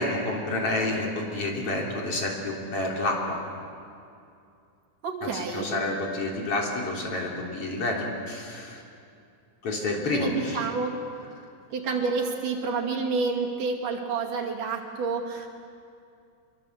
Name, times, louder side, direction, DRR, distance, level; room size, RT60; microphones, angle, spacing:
voice 1, 0.0-3.4 5.2-8.8 9.6-10.7, left 2 dB, 45° left, -1 dB, 4.3 m, -29 dB
voice 2, 5.0-5.7 10.1-11.0 11.7-15.5, right 4 dB, 80° right, 0 dB, 4.0 m, -29 dB
26.5 x 23.0 x 8.0 m, 2.5 s
omnidirectional pair, 3.6 m